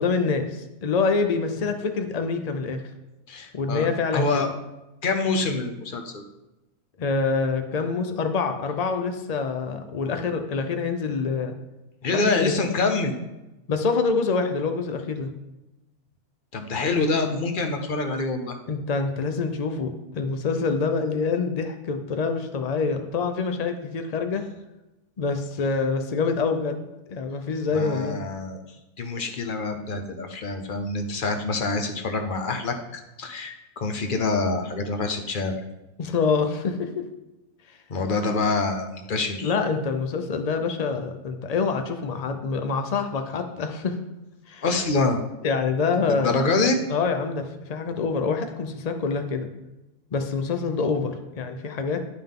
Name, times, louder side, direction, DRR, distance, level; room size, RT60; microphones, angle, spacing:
voice 1, 0.0-2.8 3.5-4.5 7.0-11.6 12.1-12.5 13.7-15.3 18.7-24.4 25.2-28.2 36.0-36.9 39.4-43.9 44.5-44.6 45.4-46.3 46.9-49.5 50.1-52.0, left 4 dB, 80° left, 6 dB, 0.3 m, -26 dB
voice 2, 3.3-3.9 4.1-4.5 5.0-6.2 12.0-13.1 16.5-18.6 27.7-28.6 29.0-35.5 37.9-39.6 44.6-45.2 46.1-46.8, left 3 dB, 45° left, 5 dB, 0.8 m, -26 dB
11.0 x 5.6 x 3.6 m, 0.99 s
omnidirectional pair, 1.6 m